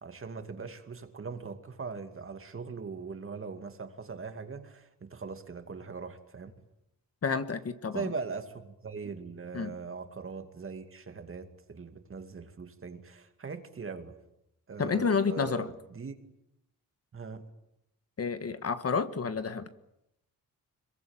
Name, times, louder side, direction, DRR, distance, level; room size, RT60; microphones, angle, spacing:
voice 1, 0.0-6.5 7.9-14.2 14.7-16.1 17.1-17.5, right 5 dB, 35° right, 2.4 m, -40 dB
voice 2, 7.2-8.1 9.5-9.7 14.8-15.7 18.2-19.7, left 5 dB, 40° left, 1.5 m, -30 dB
26.5 x 22.5 x 8.9 m
wide cardioid pair, 155°, 35 cm